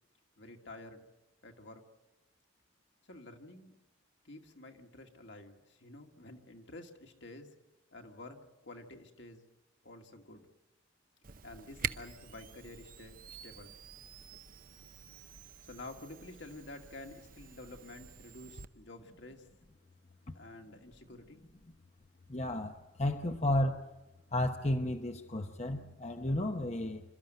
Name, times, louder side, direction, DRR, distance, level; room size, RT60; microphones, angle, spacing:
voice 1, 0.4-1.1 1.4-1.8 3.0-3.7 4.2-7.6 7.9-9.4 9.8-10.5 11.4-13.7 15.6-19.5 20.3-21.4, left 2 dB, 65° left, 3 dB, 2.3 m, -50 dB
Camera, 11.2-18.7, right 7 dB, 45° right, 0.7 m, -46 dB
voice 2, 22.3-23.8 24.3-27.0, left 1 dB, 35° left, 5 dB, 0.9 m, -32 dB
27.0 x 13.5 x 9.1 m, 1.1 s
head